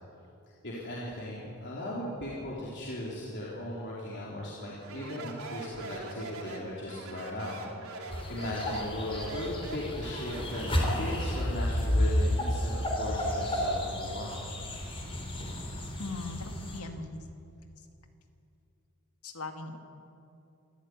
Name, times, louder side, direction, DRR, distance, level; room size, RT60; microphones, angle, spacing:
voice 1, 0.6-14.4 15.2-15.3, left 1 dB, 50° left, -6 dB, 3.9 m, -38 dB
Speech, 4.8-11.5, right 3 dB, 70° right, 3.7 m, -43 dB
sound 1, 8.1-16.8, left 1 dB, 25° left, 3.7 m, -31 dB
voice 2, 16.0-17.3 19.2-19.8, left 3 dB, 80° left, 5 dB, 2.2 m, -39 dB
26.0 x 14.5 x 9.6 m, 2.7 s
head